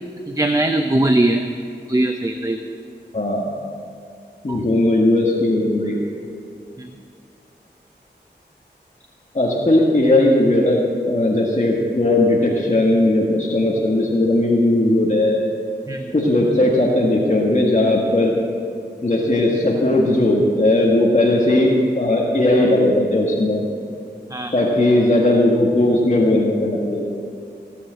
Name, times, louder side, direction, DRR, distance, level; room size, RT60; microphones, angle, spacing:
voice 1, 0.3-1.5 1.9-2.6 4.5-4.6 6.8-6.9 15.9-16.1 24.3-24.5, right 1 dB, 20° right, 6 dB, 0.7 m, -20 dB
voice 2, 3.1-3.5 4.4-6.0 9.3-10.8 11.1-15.4 16.1-18.3 19.0-23.6 24.5-27.1, left 1 dB, 40° left, -3 dB, 1.7 m, -17 dB
16.5 x 7.0 x 7.7 m, 2.4 s
wide cardioid pair, 50°, 18 cm